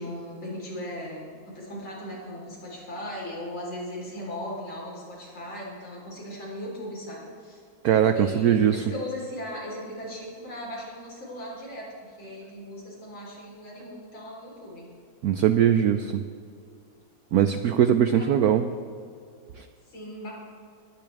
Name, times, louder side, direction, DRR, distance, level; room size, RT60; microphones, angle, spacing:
voice 1, 0.0-7.6 8.2-14.9 18.1-18.5 19.9-20.3, left 1 dB, 80° left, -4 dB, 4.6 m, -38 dB
voice 2, 7.8-8.8 15.2-16.2 17.3-18.7 19.6-19.7, right 9 dB, 85° right, 8 dB, 0.8 m, -21 dB
20.5 x 10.5 x 3.4 m, 2.2 s
omnidirectional pair, 2.2 m